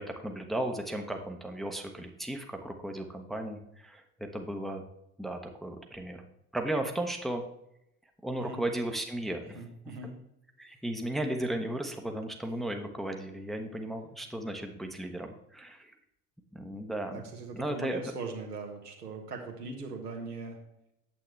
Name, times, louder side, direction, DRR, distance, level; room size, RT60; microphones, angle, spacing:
voice 1, 0.0-4.8 5.2-6.2 6.5-7.4 8.2-9.6 10.6-15.9 16.5-17.2 17.5-18.0, right 1 dB, ahead, 4 dB, 0.9 m, -35 dB
voice 2, 9.4-10.1 17.1-20.6, right 3 dB, 85° right, 1 dB, 1.6 m, -40 dB
8.8 x 7.7 x 3.2 m, 0.81 s
figure-of-eight pair, 65°, 46 cm